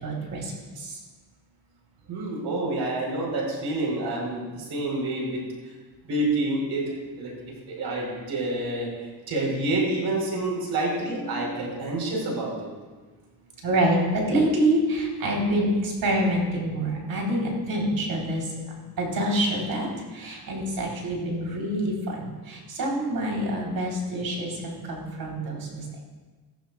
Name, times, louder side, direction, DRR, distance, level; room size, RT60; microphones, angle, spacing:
voice 1, 0.0-1.0 11.2-11.7 13.6-18.5 19.0-25.8, right 1 dB, 65° right, -1 dB, 3.9 m, -26 dB
voice 2, 2.1-5.4 6.1-6.8 7.2-7.3 7.7-8.9 9.3-12.7, right 2 dB, 80° right, -1 dB, 4.6 m, -28 dB
16.0 x 15.0 x 2.5 m, 1.3 s
cardioid pair, 125°, 40 cm